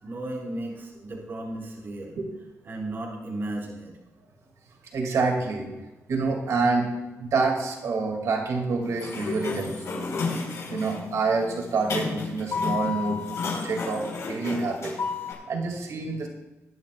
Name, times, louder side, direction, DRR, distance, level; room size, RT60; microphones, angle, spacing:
voice 1, 0.0-2.2 2.7-3.9, right 1 dB, 45° right, -4 dB, 3.8 m, -34 dB
voice 2, 4.9-5.7 6.1-6.9 7.2-10.1 10.7-14.9 15.5-16.3, right 4 dB, 85° right, 1 dB, 2.6 m, -27 dB
Sliding door, 8.8-15.3, left 4 dB, 70° left, 4.6 m, -32 dB
21.0 x 11.5 x 2.5 m, 1.1 s
wide cardioid pair, 160°, 5 cm